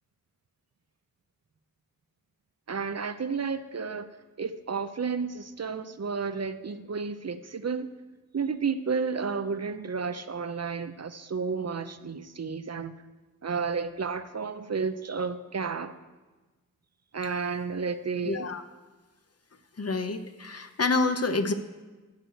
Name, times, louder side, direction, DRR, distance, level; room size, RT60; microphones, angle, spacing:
voice 1, 2.7-4.1 4.4-7.9 8.3-13.0 13.4-15.9 17.1-18.5, right 5 dB, 45° right, 11 dB, 0.6 m, -32 dB
voice 2, 18.2-18.6 19.8-21.5, left 3 dB, 45° left, 9 dB, 0.8 m, -27 dB
12.5 x 4.7 x 7.9 m, 1.2 s
wide cardioid pair, 50°, 35 cm